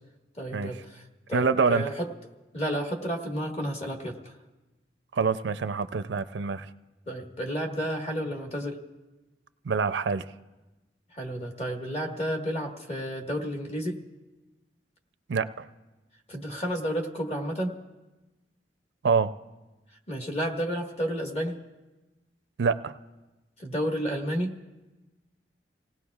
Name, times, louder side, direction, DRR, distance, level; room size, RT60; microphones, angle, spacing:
voice 1, 0.4-1.0 1.3-2.1 2.5-4.2 7.1-8.8 11.2-14.0 16.3-17.8 20.1-21.6 23.6-24.5, equal, 40° left, 2 dB, 1.6 m, -31 dB
voice 2, 1.3-1.8 5.1-6.7 9.7-10.2 15.3-15.7 19.0-19.3 22.6-22.9, right 5 dB, 85° right, 12 dB, 0.5 m, -25 dB
28.5 x 18.0 x 2.4 m, 1.1 s
head